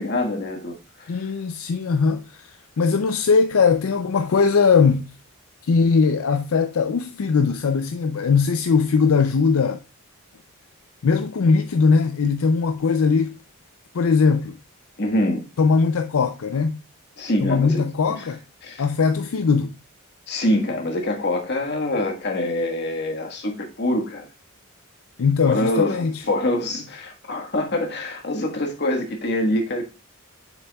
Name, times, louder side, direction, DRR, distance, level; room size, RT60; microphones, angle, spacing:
voice 1, 0.0-1.3 15.0-15.4 17.2-17.8 18.1-18.3 18.6-18.8 20.3-24.2 25.4-29.9, left 1 dB, 50° left, 1.5 m, -25 dB
voice 2, 1.1-5.1 5.7-9.8 11.0-13.4 13.9-14.6 15.6-16.8 17.4-18.4 18.8-19.7 25.2-26.2, left 5 dB, 70° left, 0.5 m, -20 dB
6.8 x 6.8 x 2.3 m
head